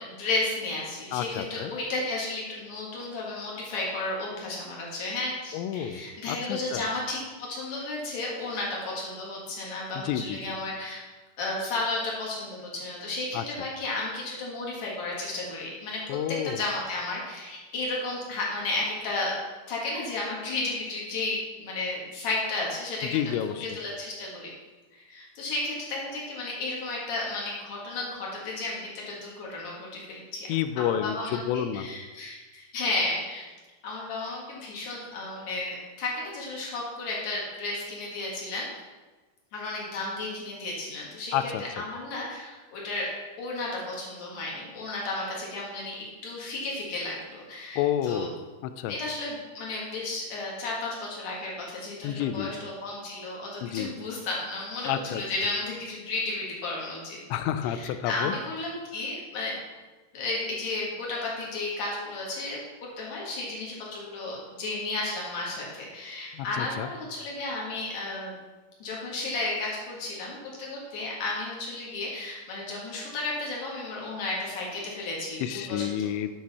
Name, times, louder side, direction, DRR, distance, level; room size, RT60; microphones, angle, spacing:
voice 1, 0.0-11.0 11.4-16.0 16.4-19.3 19.7-24.5 24.9-30.5 30.8-33.4 33.8-38.7 39.5-43.1 43.4-48.3 48.9-57.2 57.7-59.6 60.1-68.3 68.8-75.9, left 2 dB, 55° left, -4 dB, 2.1 m, -33 dB
voice 2, 1.1-1.7 5.5-6.0 6.3-6.9 9.9-10.6 13.3-13.4 16.1-16.6 23.0-23.7 30.5-31.9 41.3-41.6 47.8-48.3 48.6-49.0 52.0-52.5 53.6-53.9 54.8-55.2 57.3-58.3 66.3-66.9 75.4-76.3, left 10 dB, 85° left, 10 dB, 2.6 m, -29 dB
9.5 x 6.1 x 4.2 m, 1.3 s
omnidirectional pair, 5.6 m